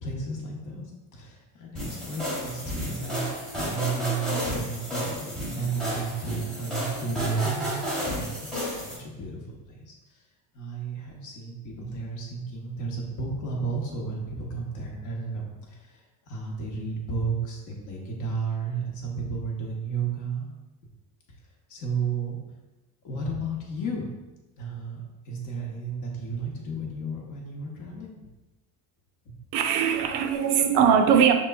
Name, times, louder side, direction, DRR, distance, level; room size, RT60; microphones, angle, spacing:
voice 1, 0.0-10.3 10.5-20.5 21.7-22.4 23.0-24.1 24.6-28.3 29.3-29.4, right 4 dB, 50° left, -1 dB, 0.8 m, -33 dB
sound 1, 1.7-9.0, equal, ahead, 0.8 m, -32 dB
voice 2, 29.5-31.3, right 7 dB, 75° right, 6 dB, 0.6 m, -20 dB
6.5 x 3.0 x 2.3 m, 1.1 s
cardioid pair, 170°, 40 cm